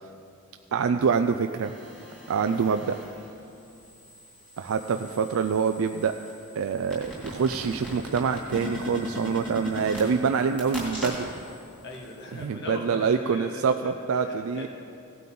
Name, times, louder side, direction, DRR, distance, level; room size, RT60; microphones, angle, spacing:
voice 1, 0.7-1.7 2.3-3.0 4.6-6.1 6.6-11.3 12.3-14.7, right 6 dB, 75° right, 7 dB, 0.4 m, -25 dB
sound 1, 1.3-3.3 3.8-11.6 11.9-12.0, left 1 dB, 5° left, 2.8 m, -39 dB
voice 2, 11.8-14.7, left 2 dB, 55° left, 0 dB, 1.6 m, -39 dB
16.0 x 9.2 x 3.9 m, 2.6 s
head